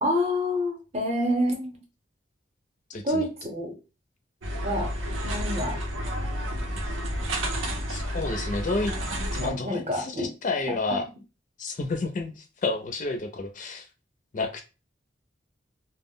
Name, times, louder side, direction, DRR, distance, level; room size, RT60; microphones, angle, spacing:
voice 1, 0.0-1.7 3.0-3.8 4.6-4.9 5.2-5.8 9.4-10.3, left 1 dB, 35° right, 3 dB, 0.7 m, -27 dB
voice 2, 2.9-3.3 7.9-8.9 9.3-11.1 11.6-13.9 14.3-14.6, left 3 dB, 40° left, 6 dB, 0.4 m, -30 dB
sound 1, 4.4-9.5, equal, 85° right, 0.7 m, -30 dB
2.1 x 2.0 x 3.6 m, 0.30 s
head